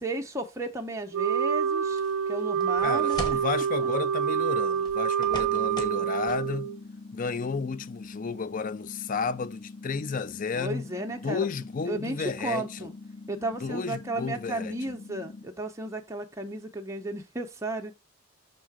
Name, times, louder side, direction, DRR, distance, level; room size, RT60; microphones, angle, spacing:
voice 1, 0.0-2.0 2.3-3.4 10.6-11.5 11.8-12.9 13.3-17.9, right 2 dB, 15° right, 0.6 m, -34 dB
Wind instrument woodwind instrument, 1.1-6.8, right 8 dB, 80° right, 0.5 m, -27 dB
sound 1, 2.0-2.1 2.6-3.5 4.8-6.0 6.3-6.4, left 1 dB, 20° left, 1.2 m, -39 dB
voice 2, 2.8-6.7 7.1-10.8 11.2-12.9 13.6-14.7, left 5 dB, 40° left, 0.4 m, -32 dB
sound 2, 5.4-15.4, left 3 dB, 65° left, 1.3 m, -44 dB
6.5 x 3.7 x 4.7 m
head